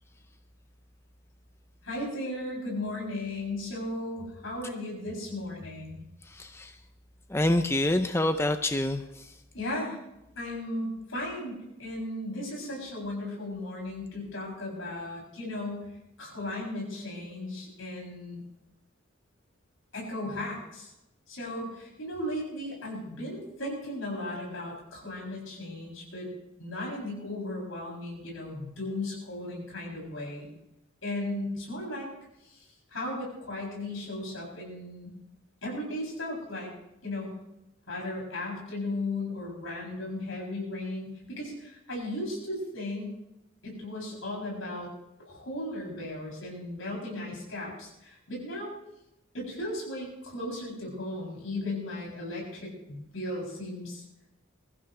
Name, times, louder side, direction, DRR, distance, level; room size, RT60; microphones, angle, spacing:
voice 1, 1.8-6.0 9.5-10.0 10.4-15.9 16.2-18.4 19.9-20.9 21.3-26.3 26.6-30.5 31.0-32.1 32.5-32.6 32.9-35.1 35.6-36.7 37.0-37.3 37.9-43.1 43.6-44.9 45.2-48.7 49.3-54.0, left 1 dB, 80° left, -3 dB, 7.6 m, -36 dB
voice 2, 6.2-6.8 7.3-9.4, left 1 dB, 10° left, 8 dB, 0.5 m, -27 dB
23.5 x 14.5 x 3.3 m, 0.90 s
head